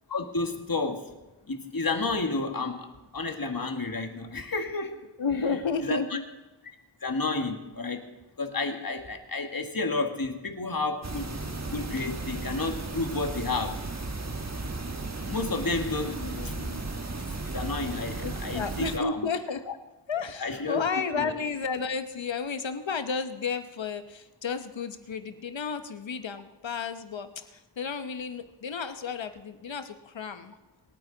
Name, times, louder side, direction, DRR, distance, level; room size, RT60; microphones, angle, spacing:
voice 1, 0.1-1.1 1.5-5.0 5.8-6.2 7.0-8.1 8.4-11.4 11.7-13.8 15.3-16.5 17.4-19.2 20.4-20.8 21.2-21.3, left 3 dB, 50° left, 5 dB, 1.7 m, -31 dB
voice 2, 5.2-6.2 16.0-16.8 18.2-19.7 20.1-30.5, left 5 dB, 90° left, 9 dB, 1.0 m, -32 dB
sound 1, 11.0-19.0, right 3 dB, 35° right, 1.3 m, -35 dB
27.0 x 9.1 x 3.9 m, 1.1 s
wide cardioid pair, 45°, 44 cm